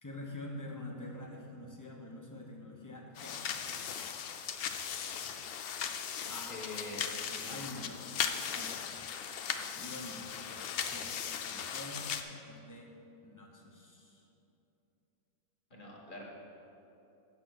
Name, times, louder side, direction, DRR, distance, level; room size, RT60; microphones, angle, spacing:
voice 1, 0.0-4.2 6.3-6.6 7.3-8.0 8.5-8.8 9.8-10.3 10.8-11.2 11.5-12.2 12.5-12.9 13.2-14.3, left 1 dB, 15° left, -1 dB, 0.9 m, -46 dB
sound 1, 3.1-12.2, left 8 dB, 65° left, 0.6 m, -38 dB
voice 2, 6.5-7.0 7.5-7.6 15.7-16.2, left 2 dB, 40° left, -3 dB, 1.5 m, -44 dB
8.6 x 6.1 x 6.1 m, 2.9 s
omnidirectional pair, 1.5 m